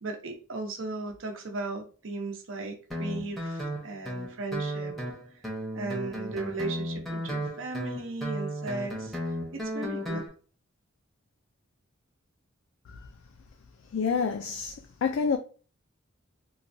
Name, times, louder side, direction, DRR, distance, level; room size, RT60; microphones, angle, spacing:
voice 1, 0.0-4.9 5.7-9.1 9.5-10.2, right 3 dB, 65° right, 0.6 m, -36 dB
Guitar, 2.9-10.3, equal, ahead, 0.7 m, -34 dB
voice 2, 13.9-14.7 15.0-15.4, left 6 dB, 65° left, 0.3 m, -27 dB
3.1 x 2.2 x 2.6 m
head